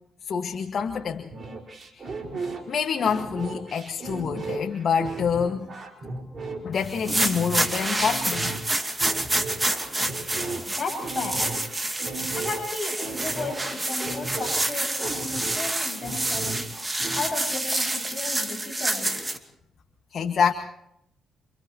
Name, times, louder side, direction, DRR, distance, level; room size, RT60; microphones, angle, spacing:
voice 1, 0.2-1.3 1.9-2.1 2.7-5.7 6.6-8.5 20.1-20.5, left 6 dB, 55° left, 4 dB, 1.9 m, -26 dB
sound 1, 1.3-17.3, right 3 dB, 40° right, 5.4 m, -36 dB
sound 2, 6.9-19.4, right 1 dB, 15° right, 2.7 m, -28 dB
voice 2, 10.4-11.6 12.3-16.5 17.1-19.2, left 3 dB, 30° left, 0 dB, 7.2 m, -34 dB
29.5 x 27.5 x 3.2 m, 0.75 s
cardioid pair, 90°, 0 cm